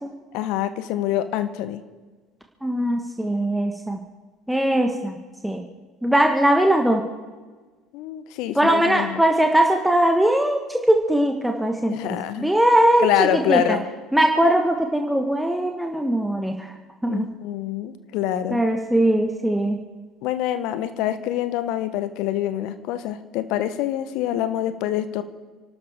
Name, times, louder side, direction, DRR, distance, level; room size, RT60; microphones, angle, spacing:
voice 1, 0.3-1.8 7.9-9.2 11.9-12.5 13.0-13.8 17.0-18.6 20.2-25.2, left 12 dB, 60° left, 11 dB, 1.1 m, -25 dB
voice 2, 2.6-4.0 4.5-5.2 5.4-5.6 6.0-7.0 8.5-13.8 14.1-16.7 17.0-17.2 18.5-19.8, right 1 dB, 5° right, 2 dB, 1.5 m, -20 dB
29.5 x 12.5 x 3.7 m, 1.4 s
figure-of-eight pair, 65°, 0 cm